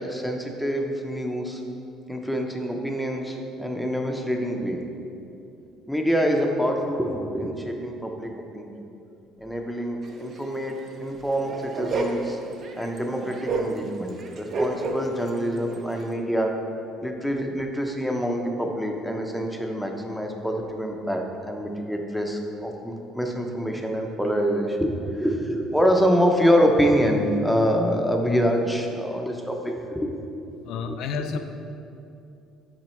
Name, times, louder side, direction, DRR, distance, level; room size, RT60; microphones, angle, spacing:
voice 1, 0.0-1.6 2.1-4.8 5.9-8.8 9.4-12.4 12.7-16.6 17.0-30.1 30.9-31.0, equal, ahead, 2 dB, 0.6 m, -26 dB
sound 1, 10.0-10.1 10.4-10.5 10.7-10.9 11.1-15.3 15.6-16.1, right 3 dB, 45° right, 0.6 m, -30 dB
voice 2, 30.6-31.4, left 5 dB, 70° left, 7 dB, 0.3 m, -30 dB
5.9 x 4.7 x 4.3 m, 2.7 s
cardioid pair, 125°, 0 cm